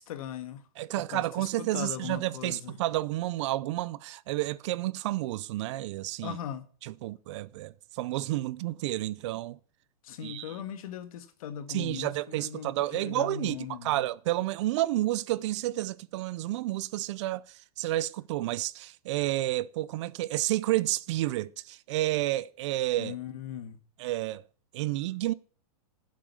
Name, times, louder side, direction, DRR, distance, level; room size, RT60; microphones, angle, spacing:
voice 1, 0.0-0.6 0.9-2.8 6.2-6.6 10.0-14.0 23.0-23.8, left 9 dB, 65° left, 1.7 m, -39 dB
voice 2, 0.8-6.4 6.8-9.6 10.2-10.6 11.7-23.2 24.0-24.4 24.7-25.3, right 16 dB, 50° right, 0.5 m, -30 dB
10.0 x 7.6 x 8.3 m
hypercardioid pair, 150°, 20 cm